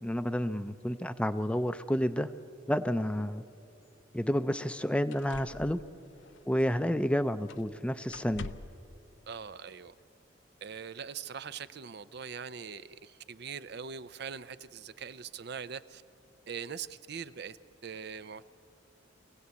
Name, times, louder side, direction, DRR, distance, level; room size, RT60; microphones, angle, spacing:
voice 1, 0.0-2.3 2.7-3.4 4.1-5.8 6.5-8.5, equal, 5° left, 11 dB, 0.5 m, -30 dB
sound 1, 3.8-3.9 4.6-4.7 5.1-7.1 7.5-7.8 8.1-8.9 10.0-10.1, left 3 dB, 85° left, 0.7 m, -47 dB
voice 2, 9.3-9.9 10.6-16.0 16.5-17.6 17.8-18.4, right 6 dB, 60° right, 14 dB, 0.5 m, -42 dB
24.5 x 17.0 x 8.2 m, 2.7 s
head